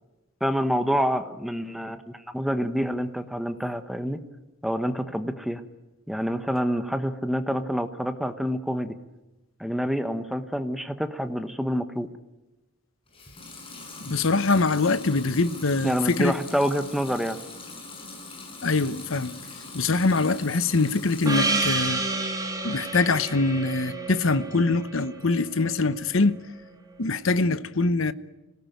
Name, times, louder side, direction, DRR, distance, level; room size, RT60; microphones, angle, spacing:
voice 1, 0.4-4.2 4.6-5.6 6.1-9.0 9.6-12.1 15.8-17.4, equal, ahead, 1.0 m, -27 dB
Water tap faucet / Sink (filling or washing) / Liquid, 13.1-22.0 22.4-23.1, left 3 dB, 25° left, 7.2 m, -42 dB
voice 2, 14.0-16.4 18.6-19.3 19.7-22.0 22.5-26.4 27.0-28.1, left 3 dB, 60° left, 0.9 m, -23 dB
Gong, 21.2-26.0, right 3 dB, 15° right, 2.8 m, -30 dB
26.0 x 18.0 x 9.3 m
head